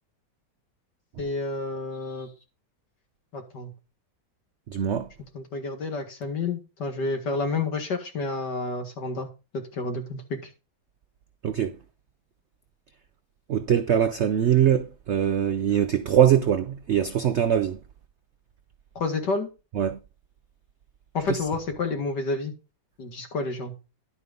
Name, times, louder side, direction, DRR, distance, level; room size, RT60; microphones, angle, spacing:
voice 1, 1.2-2.3 3.3-3.7 5.3-9.3 9.5-10.4 19.0-19.5 21.1-22.5 23.0-23.7, left 3 dB, 70° left, 2.5 m, -29 dB
voice 2, 4.7-5.1 11.4-11.8 13.5-17.8 19.7-20.0 21.3-21.4, right 9 dB, 85° right, 0.6 m, -22 dB
11.0 x 5.0 x 5.2 m
omnidirectional pair, 1.9 m